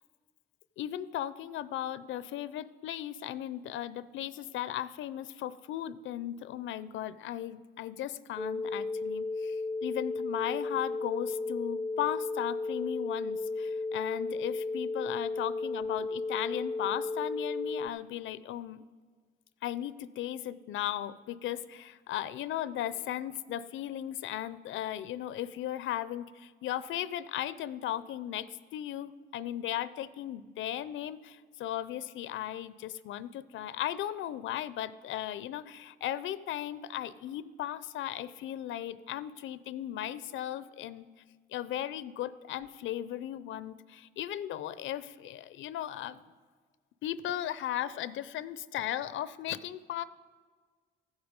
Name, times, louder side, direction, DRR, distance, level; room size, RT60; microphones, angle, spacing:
voice 1, 0.8-18.8 19.6-28.5 28.7-41.1 41.5-46.3 47.0-50.0, left 12 dB, 80° left, 16 dB, 0.5 m, -36 dB
sound 1, 8.4-17.9, left 3 dB, 5° left, 0.4 m, -34 dB
15.0 x 8.1 x 5.2 m, 1.5 s
cardioid pair, 90°, 20 cm